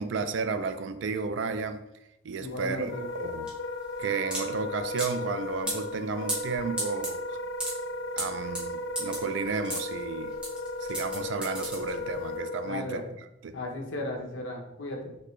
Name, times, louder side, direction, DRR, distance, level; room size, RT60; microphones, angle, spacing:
voice 1, 0.0-1.8 2.2-3.5 4.0-7.4 8.2-10.3 10.8-13.0 13.4-13.5, right 4 dB, 70° right, 10 dB, 0.4 m, -33 dB
voice 2, 2.4-3.1 12.7-13.0 13.5-15.1, left 2 dB, 80° left, 1 dB, 0.8 m, -35 dB
sound 1, 2.4-12.3, right 1 dB, 5° right, 0.9 m, -37 dB
Wind instrument woodwind instrument, 2.8-12.9, left 2 dB, 65° left, 0.3 m, -35 dB
4.1 x 3.2 x 3.1 m, 0.86 s
head